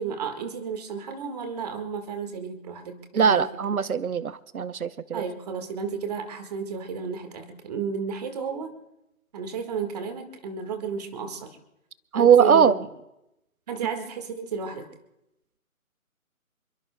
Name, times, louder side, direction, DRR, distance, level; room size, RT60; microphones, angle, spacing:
voice 1, 0.0-3.4 5.1-8.7 9.3-11.6 12.1-12.9 13.7-14.9, right 6 dB, 30° right, 7 dB, 1.8 m, -32 dB
voice 2, 3.1-5.2 12.1-12.8, right 7 dB, 90° right, 15 dB, 0.9 m, -20 dB
27.5 x 22.5 x 2.3 m, 0.88 s
hypercardioid pair, 160°, 42 cm